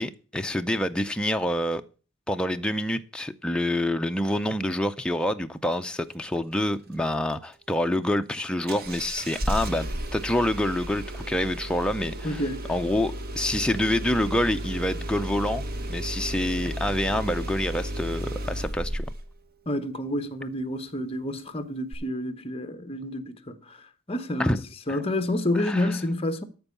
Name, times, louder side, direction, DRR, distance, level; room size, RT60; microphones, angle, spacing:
voice 1, 0.0-1.8 2.3-12.4 12.7-19.1 24.4-24.6 25.5-26.0, left 1 dB, 5° left, 0.5 m, -27 dB
Engine starting, 8.7-19.3 21.9-22.0, right 1 dB, 45° right, 1.0 m, -33 dB
voice 2, 12.2-12.7 19.7-24.6 24.9-26.4, left 1 dB, 25° left, 0.9 m, -29 dB
13.5 x 4.6 x 7.0 m
head